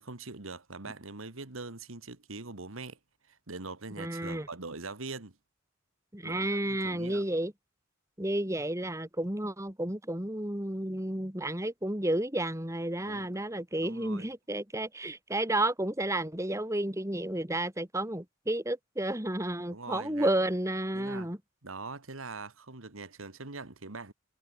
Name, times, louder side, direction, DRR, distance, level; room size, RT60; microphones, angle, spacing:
voice 1, 0.0-3.0 3.3-5.4 6.2-7.3 13.1-13.3 13.8-14.3 19.7-20.3 20.9-21.3 21.6-24.1, right 3 dB, 75° right, 2.0 m, -42 dB
voice 2, 4.0-4.5 6.1-7.5 8.2-21.4, right 1 dB, 15° right, 2.4 m, -31 dB
head